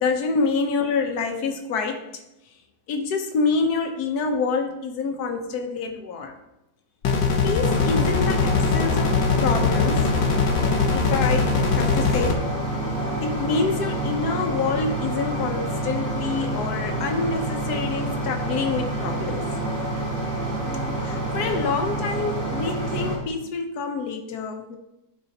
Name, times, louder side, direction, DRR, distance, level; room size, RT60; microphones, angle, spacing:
voice 1, 0.0-2.0 2.9-6.3 7.4-10.1 10.9-12.4 13.2-19.5 21.0-24.8, left 4 dB, 65° left, 4 dB, 1.4 m, -27 dB
sound 1, 7.0-12.3, left 5 dB, 85° left, 1.6 m, -22 dB
sound 2, 7.6-23.2, right 2 dB, 80° right, 2.6 m, -28 dB
13.0 x 4.4 x 2.9 m, 0.90 s
omnidirectional pair, 1.9 m